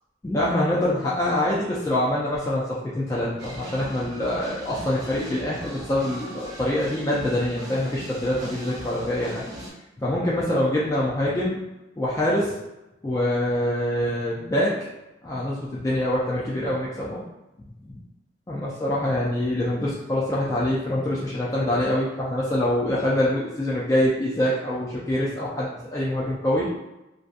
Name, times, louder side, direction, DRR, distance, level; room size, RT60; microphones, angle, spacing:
voice 1, 0.2-9.4 10.0-11.6 12.0-12.5 13.0-14.7 15.2-17.2 17.8-18.0 18.5-26.7, left 1 dB, 15° left, -6 dB, 0.3 m, -25 dB
sound 1, 3.4-9.7, equal, 20° right, 0.6 m, -39 dB
2.6 x 2.2 x 2.4 m, 0.96 s
head